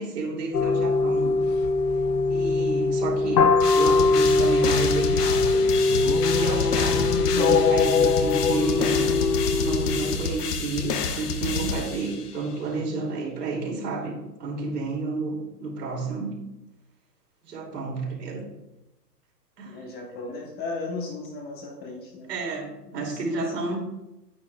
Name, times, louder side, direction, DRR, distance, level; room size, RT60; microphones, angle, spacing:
voice 1, 0.0-1.4 2.3-5.7 6.3-9.2 9.5-16.4 17.4-18.5 19.6-19.8 22.3-23.8, right 3 dB, 70° right, 0 dB, 2.6 m, -31 dB
sound 1, 0.5-10.2, left 3 dB, 85° left, 0.8 m, -22 dB
sound 2, 3.6-12.4, left 5 dB, 65° left, 1.2 m, -29 dB
voice 2, 19.6-22.3 22.9-23.5, left 3 dB, 20° left, 1 dB, 1.0 m, -36 dB
9.5 x 8.8 x 2.3 m, 0.93 s
hypercardioid pair, 130°, 49 cm